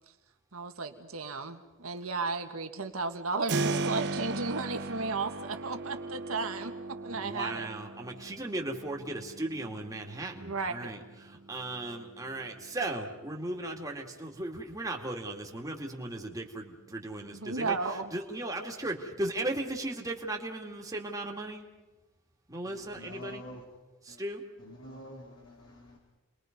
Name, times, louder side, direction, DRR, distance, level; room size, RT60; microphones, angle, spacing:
voice 1, 0.5-7.7 10.4-10.8 17.3-18.1, right 3 dB, 80° right, 1.8 m, -34 dB
Keyboard (musical), 3.5-14.2, right 3 dB, 55° right, 0.9 m, -39 dB
voice 2, 7.1-17.8 18.1-21.7 22.5-23.4 24.1-24.4, right 2 dB, 15° right, 2.5 m, -37 dB
voice 3, 22.6-23.7 24.1-24.2 24.6-26.0, left 1 dB, 70° left, 3.6 m, -47 dB
30.0 x 22.0 x 5.4 m
head